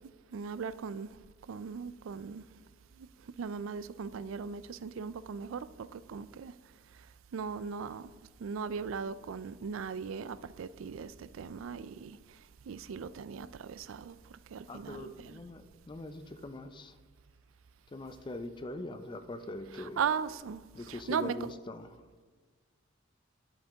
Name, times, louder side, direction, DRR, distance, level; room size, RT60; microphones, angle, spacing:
voice 1, 0.3-1.1 1.5-2.4 3.0-3.1 3.4-6.5 7.3-8.1 8.4-12.2 12.7-15.4 19.7-21.5, right 6 dB, 75° right, 0.4 m, -38 dB
voice 2, 14.7-17.0 17.9-20.0 20.7-22.1, left 2 dB, 25° left, 0.4 m, -42 dB
10.5 x 8.1 x 3.5 m
head